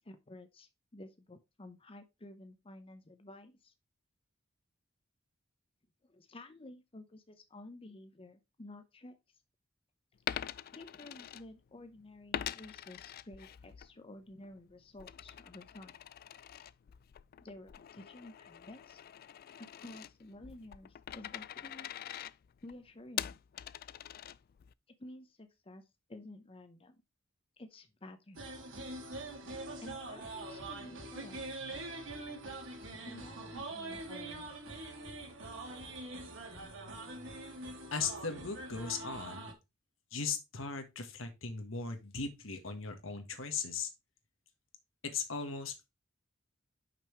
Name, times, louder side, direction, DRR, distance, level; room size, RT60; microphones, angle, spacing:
voice 1, 0.0-3.7 6.0-9.2 10.7-15.9 17.4-19.0 19.6-21.9 22.6-23.4 25.0-25.8 26.1-27.0 27.6-28.5 29.8-31.5 32.9-34.5, left 1 dB, 30° left, 0.7 m, -52 dB
Coin (dropping), 10.2-11.9 12.3-13.9 14.3-24.7, left 10 dB, 50° left, 0.3 m, -44 dB
Jewish Festivities, 28.4-39.5, right 2 dB, 70° right, 2.3 m, -44 dB
voice 2, 37.9-39.5 40.1-43.9 45.0-45.9, left 5 dB, 85° left, 1.5 m, -38 dB
5.9 x 5.4 x 4.4 m
head